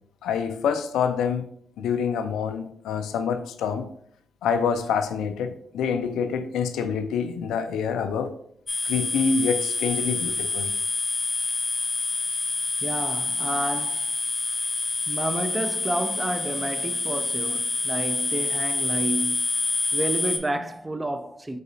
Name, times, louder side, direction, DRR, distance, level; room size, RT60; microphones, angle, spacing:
voice 1, 0.2-1.5 1.8-3.9 4.4-8.3 8.8-10.7, left 6 dB, 75° left, 0.3 m, -26 dB
sound 1, 8.7-20.4, left 3 dB, 40° left, 0.7 m, -27 dB
voice 2, 12.8-14.1 15.1-19.5 19.9-21.6, right 1 dB, 20° right, 0.4 m, -30 dB
4.0 x 3.8 x 2.6 m
hypercardioid pair, 45°, 0 cm